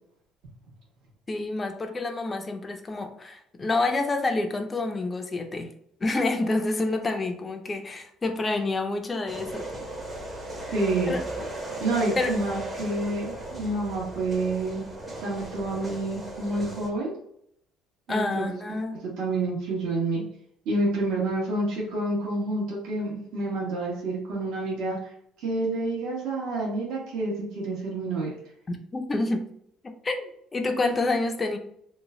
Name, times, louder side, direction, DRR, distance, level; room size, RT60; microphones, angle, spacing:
voice 1, 1.3-5.7 6.0-9.7 10.6-10.7 11.1-11.2 12.2-12.3 18.1-19.1 28.7-29.5 29.8-30.2 30.5-31.6, left 2 dB, 20° left, 5 dB, 0.5 m, -28 dB
sound 1, 9.3-16.9, right 1 dB, 20° right, 0.7 m, -36 dB
voice 2, 10.7-11.1 11.8-14.8 15.2-17.1 18.1-18.6 19.2-20.2 20.6-25.0 25.4-28.3, right 2 dB, 70° right, -4 dB, 1.3 m, -28 dB
3.0 x 2.2 x 3.6 m, 0.70 s
cardioid pair, 135°, 0 cm